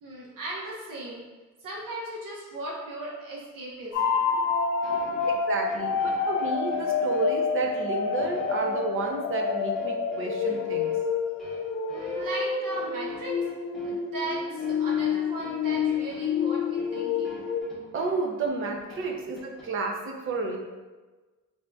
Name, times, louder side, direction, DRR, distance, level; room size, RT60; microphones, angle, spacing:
voice 1, 0.0-1.2 1.6-4.4 4.9-5.2 11.9-13.4 13.8-17.4 19.1-19.2, right 2 dB, 90° right, -4 dB, 1.0 m, -37 dB
sound 1, 3.9-17.6, left 5 dB, 60° left, 0.6 m, -28 dB
sound 2, 4.8-19.7, equal, ahead, 0.8 m, -47 dB
voice 2, 5.5-11.0 17.9-20.6, right 3 dB, 40° right, 1 dB, 0.5 m, -31 dB
3.8 x 3.6 x 2.3 m, 1.3 s
wide cardioid pair, 180°, 32 cm